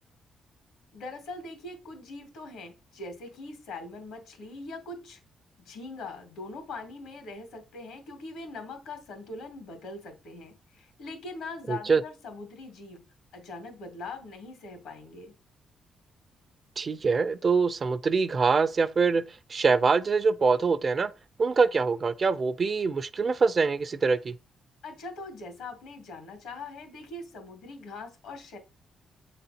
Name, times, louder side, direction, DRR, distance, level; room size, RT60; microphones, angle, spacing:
voice 1, 0.9-5.2 5.6-13.0 13.3-15.3 24.8-28.6, left 3 dB, 90° left, 2.4 m, -42 dB
voice 2, 11.7-12.0 16.8-19.2 19.5-21.1 21.4-24.4, right 4 dB, 35° right, 0.4 m, -24 dB
7.7 x 3.9 x 4.2 m
cardioid pair, 120°, 0 cm